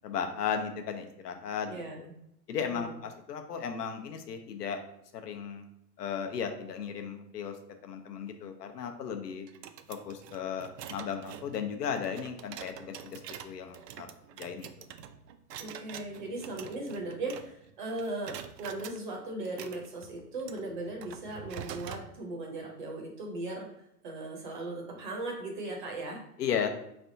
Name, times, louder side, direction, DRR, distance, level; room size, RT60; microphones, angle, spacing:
voice 1, 0.0-2.1 2.5-4.8 5.1-5.7 6.0-7.6 7.8-9.5 9.9-14.1 14.4-14.7 26.4-26.7, left 7 dB, 75° left, 6 dB, 0.8 m, -35 dB
voice 2, 1.7-2.1 2.6-2.9 15.6-23.7 24.0-26.2, right 2 dB, 30° right, 1 dB, 0.7 m, -38 dB
sound 1, 9.5-17.7 18.0-19.0 19.4-22.1, right 9 dB, 80° right, 0.6 m, -46 dB
4.3 x 3.4 x 2.6 m, 0.78 s
hypercardioid pair, 160°, 48 cm